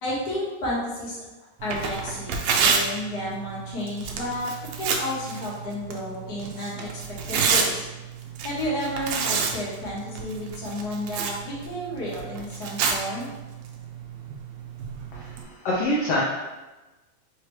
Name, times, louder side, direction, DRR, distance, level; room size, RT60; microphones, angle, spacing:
voice 1, 0.0-1.2 1.6-4.5 4.8-7.8 8.4-13.3, left 1 dB, 45° left, -7 dB, 1.4 m, -32 dB
Tearing, 1.6-15.4, right 5 dB, 80° right, 1.6 m, -30 dB
voice 2, 15.1-16.2, left 1 dB, 70° left, -6 dB, 1.5 m, -26 dB
4.9 x 2.9 x 3.1 m, 1.1 s
omnidirectional pair, 3.4 m